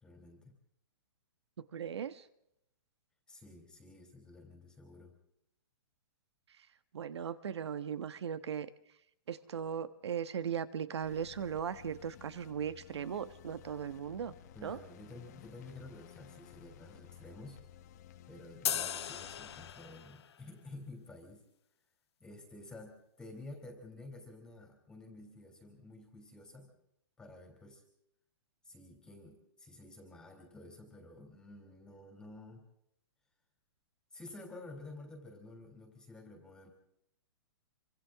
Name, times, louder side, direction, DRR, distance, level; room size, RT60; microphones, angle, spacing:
voice 1, 0.0-0.5 3.3-5.2 14.5-17.6 18.3-21.4 22.2-26.7 27.2-27.8 28.6-32.6 34.1-36.7, left 2 dB, 5° left, 3 dB, 3.1 m, -51 dB
voice 2, 1.6-2.3 6.9-8.7 9.3-14.3 14.6-14.8, right 8 dB, 85° right, 13 dB, 1.5 m, -38 dB
sound 1, 11.0-19.7, left 10 dB, 40° left, 1.3 m, -56 dB
sound 2, 18.7-20.3, left 9 dB, 75° left, 1.3 m, -37 dB
27.5 x 25.5 x 3.7 m, 0.77 s
hypercardioid pair, 170°, 14 cm